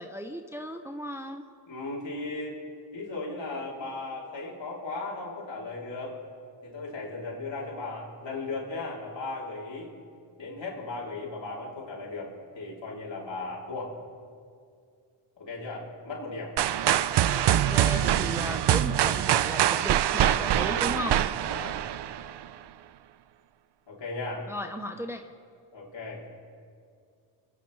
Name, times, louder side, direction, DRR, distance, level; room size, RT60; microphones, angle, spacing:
voice 1, 0.0-1.4 17.2-21.2 24.5-25.3, equal, 5° right, 6 dB, 0.7 m, -36 dB
voice 2, 1.7-2.6 2.9-6.2 6.6-9.9 10.4-14.0 15.4-16.5 21.4-21.8 23.9-24.5 25.7-26.2, left 3 dB, 65° left, -4 dB, 3.5 m, -36 dB
sound 1, 16.6-22.5, right 11 dB, 60° right, 0.5 m, -24 dB
26.5 x 9.5 x 3.3 m, 2.3 s
cardioid pair, 55°, 47 cm